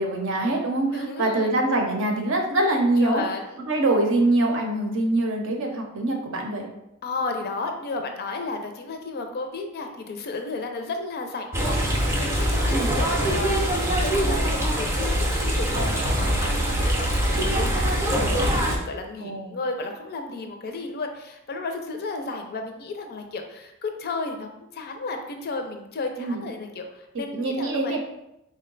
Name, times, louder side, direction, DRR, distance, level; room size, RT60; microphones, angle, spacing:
voice 1, 0.0-3.2 3.7-6.7 12.7-12.9 19.2-19.5 26.2-26.4 27.3-28.0, right 2 dB, 60° right, 2 dB, 0.6 m, -24 dB
voice 2, 0.9-1.6 3.0-3.6 7.0-28.0, left 3 dB, 45° left, 4 dB, 0.4 m, -33 dB
sound 1, 11.5-18.8, equal, 10° right, 0.5 m, -23 dB
3.7 x 2.1 x 3.8 m, 0.86 s
head